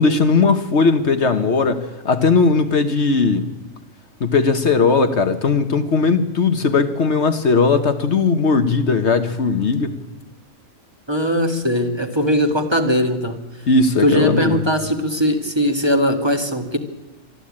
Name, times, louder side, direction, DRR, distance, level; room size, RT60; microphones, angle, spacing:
voice 1, 0.0-3.5 4.2-10.0 13.7-14.6, left 4 dB, 60° left, 1.4 m, -18 dB
voice 2, 11.1-13.4 14.0-16.8, equal, 20° right, 1.9 m, -19 dB
24.5 x 12.5 x 8.7 m
omnidirectional pair, 1.4 m